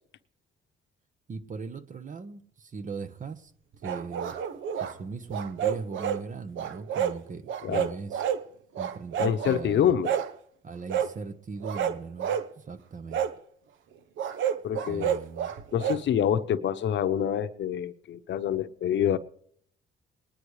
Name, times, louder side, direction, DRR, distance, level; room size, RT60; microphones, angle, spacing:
voice 1, 1.3-3.5 3.8-4.3 4.8-8.2 8.8-9.9 10.6-13.3 14.9-15.5, right 4 dB, 40° right, 12 dB, 1.1 m, -39 dB
sound 1, 3.8-4.9 5.3-6.2 6.6-7.2 7.5-8.4 8.7-9.6 10.0-10.3 10.9-11.1 11.6-12.5 13.1-13.3 14.2-16.0, right 8 dB, 75° right, 0.9 m, -29 dB
voice 2, 9.2-10.2 14.6-15.2 15.7-19.2, left 9 dB, 65° left, 11 dB, 0.9 m, -26 dB
21.0 x 10.0 x 3.2 m, 0.63 s
cardioid pair, 90°, 20 cm